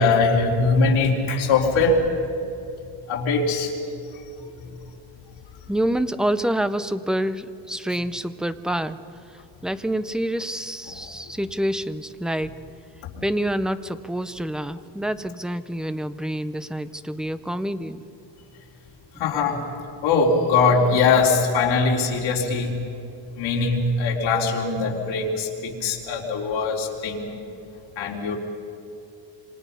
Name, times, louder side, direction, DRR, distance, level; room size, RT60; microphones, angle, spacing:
voice 1, 0.0-2.0 3.1-3.7 10.9-11.0 19.2-19.6 20.0-22.8 23.4-27.4 28.0-28.4, left 4 dB, 85° left, -2 dB, 4.1 m, -21 dB
voice 2, 5.7-9.0 9.6-12.5 13.2-18.0, right 1 dB, ahead, 12 dB, 0.5 m, -27 dB
27.0 x 26.0 x 5.6 m, 2.8 s
cardioid pair, 165°, 46 cm